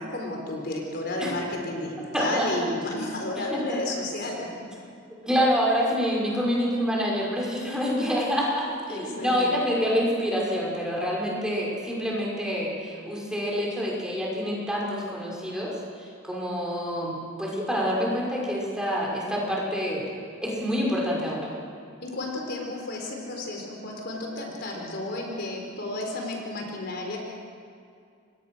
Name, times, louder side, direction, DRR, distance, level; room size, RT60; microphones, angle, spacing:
voice 1, 0.0-4.5 8.9-9.7 22.0-27.2, left 2 dB, 50° left, 1 dB, 4.6 m, -32 dB
voice 2, 2.1-2.4 3.5-3.8 5.2-15.7 16.2-20.1 20.4-21.5, equal, 5° right, -4 dB, 5.8 m, -27 dB
28.5 x 23.5 x 6.4 m, 2.4 s
head